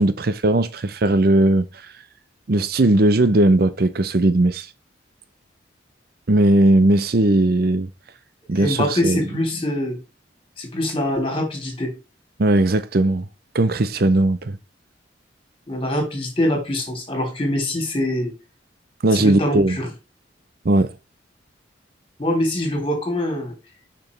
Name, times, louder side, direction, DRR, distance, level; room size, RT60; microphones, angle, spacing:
voice 1, 0.0-1.9 2.5-4.7 6.3-7.9 8.5-9.2 12.4-13.3 13.5-14.6 19.0-19.8 20.6-20.9, right 2 dB, 50° right, 0.6 m, -18 dB
voice 2, 8.6-10.0 10.6-11.9 15.7-18.3 19.1-19.9 22.2-23.5, left 1 dB, 30° left, 3.4 m, -24 dB
7.0 x 6.1 x 3.2 m
head